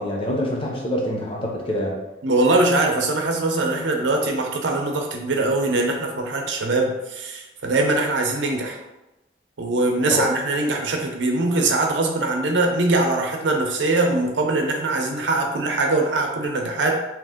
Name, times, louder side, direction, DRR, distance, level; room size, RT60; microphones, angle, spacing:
voice 1, 0.0-2.0 10.1-10.3, equal, 30° left, -2 dB, 0.6 m, -25 dB
voice 2, 2.2-8.8 9.6-17.0, right 2 dB, 80° right, 1 dB, 0.6 m, -22 dB
2.8 x 2.5 x 3.6 m, 0.99 s
head